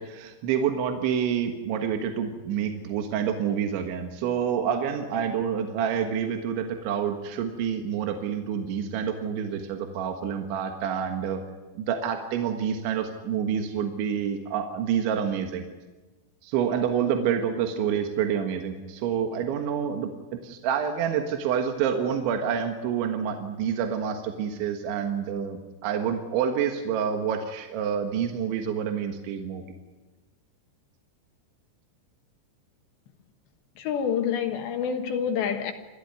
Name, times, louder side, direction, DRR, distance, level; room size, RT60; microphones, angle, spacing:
voice 1, 0.0-11.4 11.8-15.6 16.4-20.1 20.4-29.6, right 8 dB, 75° right, 3.8 m, -28 dB
voice 2, 33.8-35.7, left 7 dB, 70° left, 3.4 m, -27 dB
29.5 x 14.5 x 9.5 m
omnidirectional pair, 5.5 m